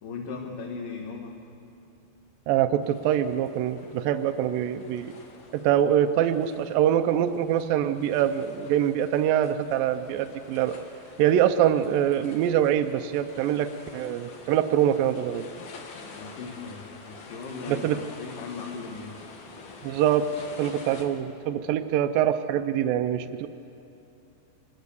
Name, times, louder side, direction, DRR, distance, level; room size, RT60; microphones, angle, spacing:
voice 1, 0.0-1.6 16.1-19.3, left 4 dB, 65° left, -1 dB, 3.1 m, -38 dB
voice 2, 2.5-5.1 5.5-10.8 11.2-15.5 17.7-18.0 19.8-20.3 20.6-23.5, right 10 dB, 80° right, 7 dB, 2.3 m, -24 dB
sound 1, 2.8-21.1, left 4 dB, 90° left, 4.1 m, -47 dB
26.0 x 21.5 x 7.0 m, 2.8 s
omnidirectional pair, 4.2 m